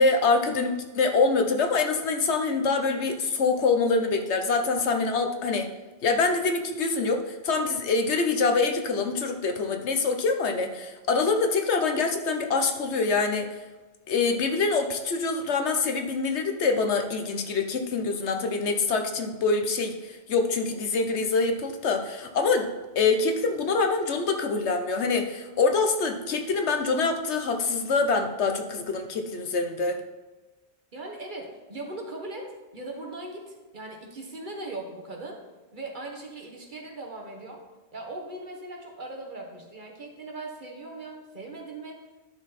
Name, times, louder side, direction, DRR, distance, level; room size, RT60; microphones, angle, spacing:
voice 1, 0.0-5.7 6.0-13.5 14.1-22.7 23.0-30.0, left 4 dB, 80° left, 5 dB, 1.2 m, -25 dB
voice 2, 30.9-35.4 35.7-37.6 37.9-42.0, right 2 dB, 45° right, 1 dB, 1.5 m, -39 dB
10.5 x 6.2 x 4.2 m, 1.2 s
omnidirectional pair, 1.1 m